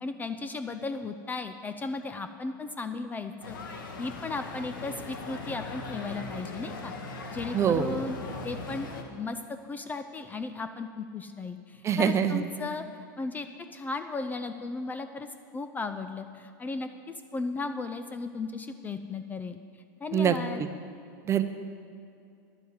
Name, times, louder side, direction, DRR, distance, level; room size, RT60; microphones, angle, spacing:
voice 1, 0.0-8.2 8.4-9.4 9.7-12.8 13.2-15.3 15.5-19.6 20.0-20.6, left 3 dB, 15° left, 9 dB, 0.5 m, -36 dB
sound 1, 3.4-9.0, left 3 dB, 90° left, 1.5 m, -39 dB
voice 2, 7.5-8.0 11.8-12.4 20.1-20.7 21.3-21.4, right 8 dB, 25° right, 9 dB, 0.7 m, -25 dB
10.5 x 7.5 x 8.1 m, 2.4 s
supercardioid pair, 125°, 11 cm